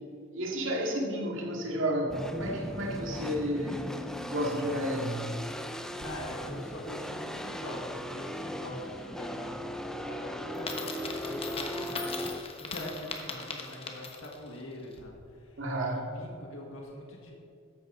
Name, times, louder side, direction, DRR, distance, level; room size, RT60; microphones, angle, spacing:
voice 1, 0.3-3.9 4.3-5.3 15.6-16.1, equal, 65° right, -1 dB, 2.2 m, -31 dB
sound 1, 2.1-12.4, equal, 5° left, 0.5 m, -38 dB
voice 2, 6.0-11.9 12.3-17.3, left 1 dB, 75° left, -1 dB, 1.9 m, -43 dB
Coin (dropping), 10.5-14.5, left 4 dB, 30° left, 1.2 m, -39 dB
13.5 x 11.0 x 3.9 m, 2.5 s
head